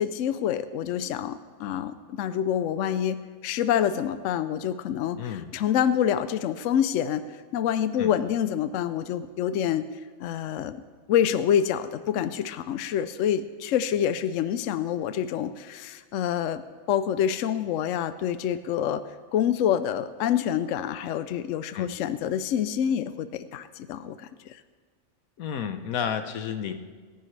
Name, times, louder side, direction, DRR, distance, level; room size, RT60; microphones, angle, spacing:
voice 1, 0.0-3.2 3.4-9.8 10.2-10.8 11.1-16.6 16.9-19.0 19.3-24.6, left 9 dB, 70° left, 12 dB, 0.9 m, -27 dB
voice 2, 5.2-5.5 8.0-8.1 21.7-21.9 25.4-26.7, left 8 dB, 90° left, 8 dB, 1.3 m, -31 dB
26.5 x 10.5 x 3.2 m, 1.5 s
omnidirectional pair, 1.4 m